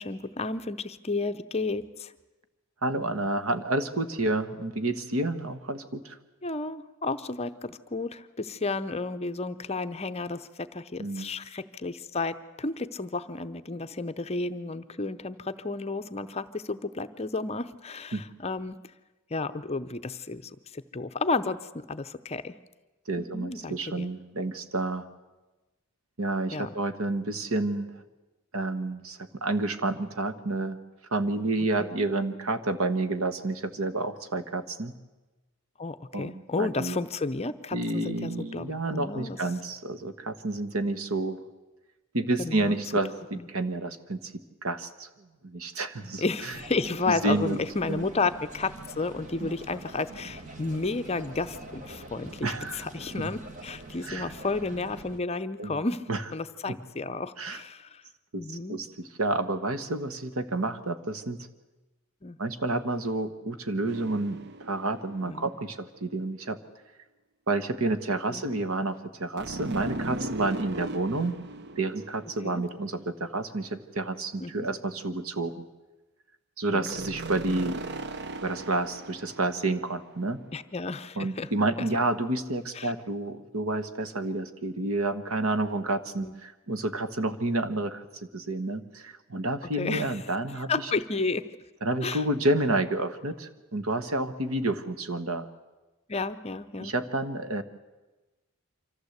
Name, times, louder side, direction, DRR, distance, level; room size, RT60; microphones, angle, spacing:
voice 1, 0.0-2.1 6.4-18.8 19.3-22.5 23.2-24.1 26.5-26.7 31.8-31.9 35.8-39.4 42.4-42.8 43.3-43.5 46.2-56.0 56.3-58.0 58.3-58.8 62.2-62.4 65.3-65.5 68.3-68.4 71.1-71.3 72.4-72.6 74.4-74.7 76.7-77.0 80.5-81.5 82.7-82.9 86.2-86.3 89.8-90.1 90.7-91.4 92.0-92.2 96.1-96.9, left 3 dB, 30° left, 11 dB, 0.7 m, -32 dB
voice 2, 2.8-6.2 11.0-11.3 18.1-18.2 23.1-25.0 26.2-27.9 28.5-30.8 31.1-34.9 36.1-37.0 37.7-41.4 42.1-44.2 44.6-45.1 45.4-46.5 47.1-47.6 47.9-48.1 49.4-49.5 52.4-52.9 54.0-54.3 55.6-55.8 56.1-56.2 56.7-56.8 57.4-57.6 58.3-58.9 59.2-61.4 62.4-66.6 67.5-71.3 71.8-75.6 76.6-77.8 78.4-80.4 81.2-88.0 88.3-90.9 91.8-95.5 96.8-97.6, right 2 dB, 75° right, 10 dB, 1.4 m, -29 dB
sound 1, 46.5-55.2, right 2 dB, 35° right, 1.9 m, -45 dB
sound 2, 63.9-65.5 69.4-73.1 76.9-80.2, right 2 dB, 50° right, 0.8 m, -38 dB
25.0 x 15.0 x 8.1 m, 1.1 s
head